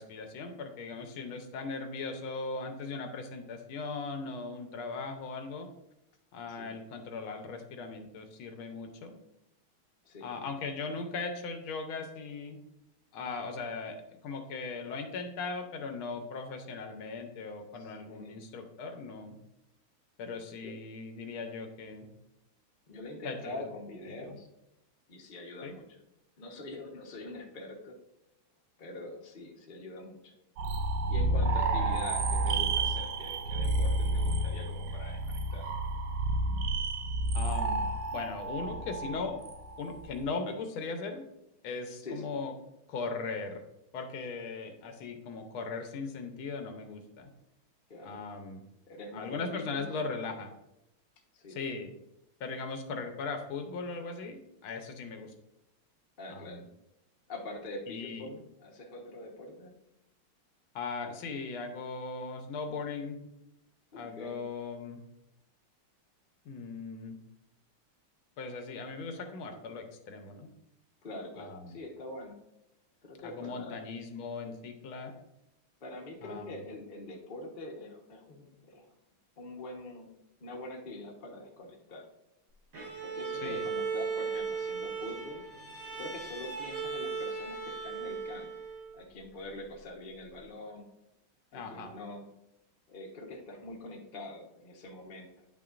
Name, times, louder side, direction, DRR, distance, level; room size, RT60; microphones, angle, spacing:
voice 1, 0.0-5.7 6.3-9.2 10.2-12.6 13.1-19.4 20.2-22.1 23.2-23.7 25.6-25.8 37.3-37.9 38.1-39.4 39.8-41.2 41.6-42.5 42.9-43.6 43.9-47.3 48.0-48.6 49.1-50.5 51.5-51.9 52.4-55.3 56.3-56.7 57.9-58.3 60.7-63.2 64.0-65.0 66.4-67.2 68.4-70.5 71.4-71.8 73.2-75.1 76.2-76.6 83.4-83.6 91.5-91.9, left 4 dB, 85° left, 6 dB, 1.6 m, -38 dB
voice 2, 6.5-6.8 10.0-10.3 17.7-18.4 20.6-20.7 22.9-24.5 25.1-26.0 26.4-27.9 28.8-30.3 31.1-35.7 42.0-42.3 47.9-48.2 48.9-50.1 51.3-51.6 56.2-56.6 57.3-59.7 63.9-64.4 71.0-72.3 73.0-73.8 75.8-78.9 79.4-80.1 80.4-82.1 83.0-85.4 86.0-88.5 88.9-90.9 91.5-92.3 92.9-95.5, left 2 dB, 35° left, -1 dB, 0.9 m, -44 dB
sound 1, 30.6-40.2, right 2 dB, 80° right, 1.6 m, -30 dB
Bowed string instrument, 82.7-89.0, right 5 dB, 60° right, 2.2 m, -37 dB
9.6 x 5.8 x 2.5 m, 0.86 s
omnidirectional pair, 2.3 m